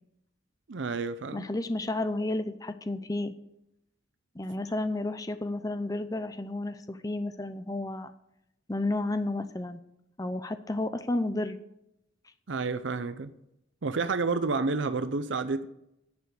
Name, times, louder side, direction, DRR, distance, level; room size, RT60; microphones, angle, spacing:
voice 1, 0.7-1.5 12.5-13.3 13.8-15.7, right 4 dB, 70° right, 12 dB, 0.6 m, -30 dB
voice 2, 1.3-3.3 4.3-8.1 8.7-9.8 10.2-11.6, left 2 dB, 20° left, 10 dB, 0.6 m, -31 dB
10.5 x 6.9 x 9.4 m, 0.82 s
head